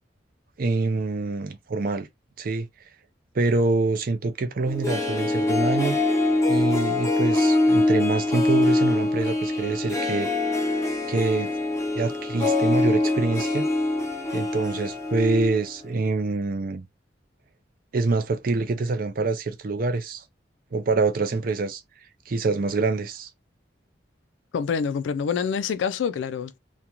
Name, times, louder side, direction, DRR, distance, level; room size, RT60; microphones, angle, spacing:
voice 1, 0.6-2.1 2.4-2.7 3.3-6.0 6.5-10.3 11.1-11.5 11.9-13.7 14.3-16.9 17.9-20.2 20.7-21.8 22.3-23.3, right 3 dB, 50° right, 0.4 m, -25 dB
Harp, 4.7-15.7 15.9-16.0, left 2 dB, 15° left, 0.6 m, -24 dB
voice 2, 24.5-26.6, left 6 dB, 75° left, 0.3 m, -26 dB
2.5 x 2.2 x 2.8 m
head